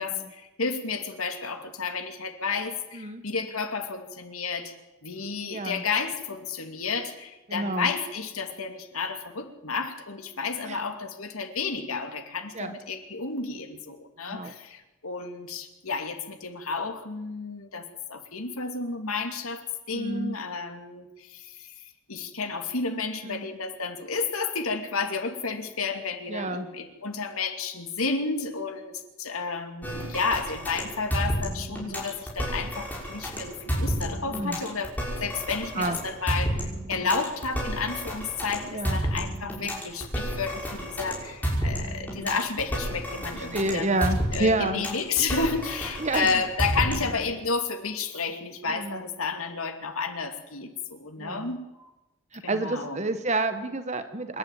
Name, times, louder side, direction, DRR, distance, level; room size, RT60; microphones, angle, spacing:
voice 1, 0.0-4.7 5.0-34.9 35.2-44.0 44.3-51.9 52.4-53.0, left 4 dB, 85° left, 6 dB, 2.6 m, -31 dB
voice 2, 2.9-3.2 5.5-5.8 7.5-7.9 10.7-10.9 12.5-12.7 14.3-14.5 19.9-20.4 23.2-23.4 26.3-26.7 34.3-34.6 35.8-36.0 38.7-39.0 43.3-44.8 46.0-46.4 48.7-49.0 51.2-51.5 52.3-54.4, right 2 dB, 30° right, 9 dB, 1.2 m, -29 dB
sound 1, 29.8-47.2, equal, 10° left, 6.0 m, -31 dB
26.5 x 11.5 x 9.2 m, 1.0 s
head